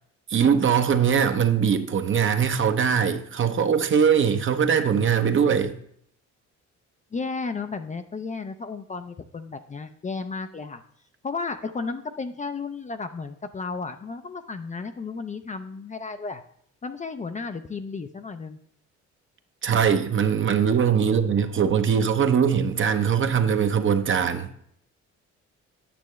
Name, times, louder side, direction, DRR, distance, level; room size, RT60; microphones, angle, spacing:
voice 1, 0.3-5.8 19.6-24.5, right 7 dB, 40° right, 0.7 m, -21 dB
voice 2, 7.1-10.8 11.2-16.4 16.8-18.6, left 4 dB, 25° left, 0.4 m, -33 dB
8.6 x 6.6 x 3.1 m
cardioid pair, 90°, 30 cm